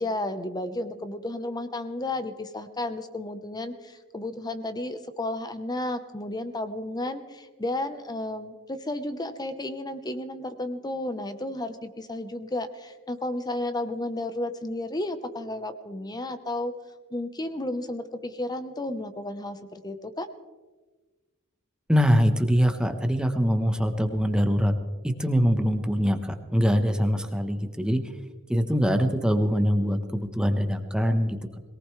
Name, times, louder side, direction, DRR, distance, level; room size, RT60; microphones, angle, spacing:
voice 1, 0.0-16.7 17.1-20.3, left 1 dB, 20° left, 10 dB, 0.9 m, -32 dB
voice 2, 21.9-24.7 25.0-28.0 28.5-31.6, equal, 5° right, 7 dB, 1.0 m, -23 dB
22.0 x 18.5 x 3.3 m, 1.3 s
head